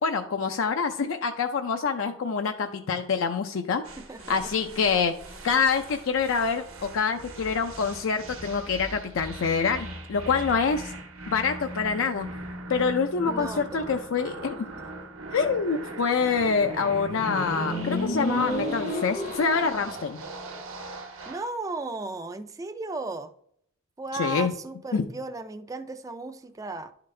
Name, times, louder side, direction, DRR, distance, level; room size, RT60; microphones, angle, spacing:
voice 1, 0.0-3.8 4.3-5.1 5.4-10.9 11.3-12.3 12.7-14.6 15.3-20.2 24.2-24.5 24.9-25.0, left 5 dB, 75° left, 6 dB, 0.4 m, -26 dB
sound 1, 3.8-21.5, right 2 dB, 85° right, 1.1 m, -40 dB
voice 2, 4.0-4.5 13.3-14.0 21.3-23.3 24.0-26.9, right 3 dB, 15° right, 9 dB, 0.3 m, -35 dB
Motorcycle, 16.4-19.9, left 1 dB, 35° left, 0.6 m, -31 dB
11.0 x 3.9 x 3.2 m, 0.69 s
head